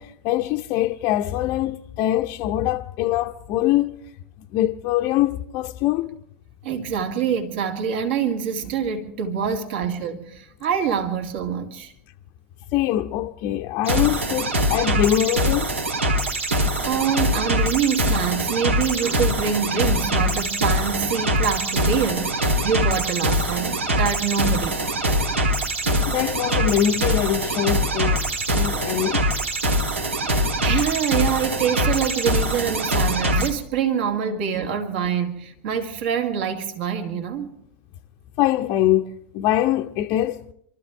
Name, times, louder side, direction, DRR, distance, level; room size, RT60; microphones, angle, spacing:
voice 1, 0.0-4.0 4.5-6.2 12.7-15.8 26.1-29.2 38.4-40.5, left 13 dB, 40° left, 0.6 m, -23 dB
voice 2, 6.6-11.9 16.8-24.9 30.6-37.5, right 7 dB, 55° right, 2.1 m, -25 dB
sound 1, 13.8-33.5, equal, 75° right, 1.9 m, -23 dB
26.0 x 14.0 x 3.5 m
figure-of-eight pair, 85°, 7 cm